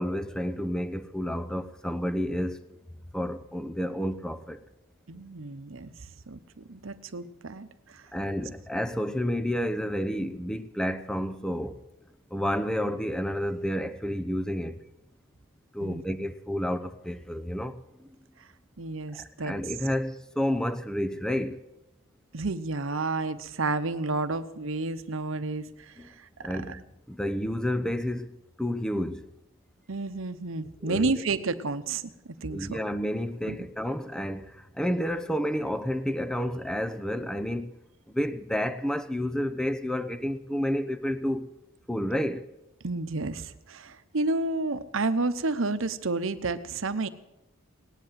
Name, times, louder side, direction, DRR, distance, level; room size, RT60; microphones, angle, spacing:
voice 1, 0.0-2.6 3.1-4.6 8.1-11.8 12.3-14.8 15.7-18.1 19.1-21.6 26.0-26.1 26.4-29.3 30.8-31.1 32.5-37.8 38.1-41.5 41.9-42.5, equal, 5° left, 0.7 m, -30 dB
voice 2, 5.1-8.0 15.8-16.0 18.8-19.6 22.3-26.8 29.9-32.8 33.5-33.6 42.8-47.1, right 3 dB, 75° right, 0.9 m, -31 dB
18.0 x 10.5 x 7.5 m
head